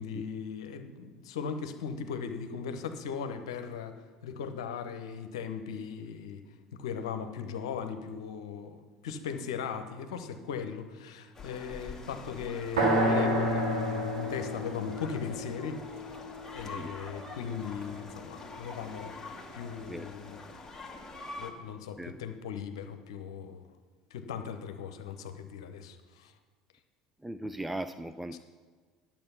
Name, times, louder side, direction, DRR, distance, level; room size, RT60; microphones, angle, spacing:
voice 1, 0.0-3.9 4.2-6.4 6.8-8.8 9.0-15.8 16.5-19.1 19.5-20.4 21.4-23.6 24.1-26.3 28.3-28.4, left 6 dB, 70° left, 8 dB, 0.9 m, -38 dB
sound 1, 11.3-21.5, left 3 dB, 15° left, 1.9 m, -45 dB
sound 2, 12.8-16.7, equal, 80° right, 2.1 m, -29 dB
voice 2, 27.2-28.4, right 1 dB, 5° right, 10 dB, 0.4 m, -38 dB
10.5 x 7.3 x 5.6 m, 1.5 s
figure-of-eight pair, 65°, 3 cm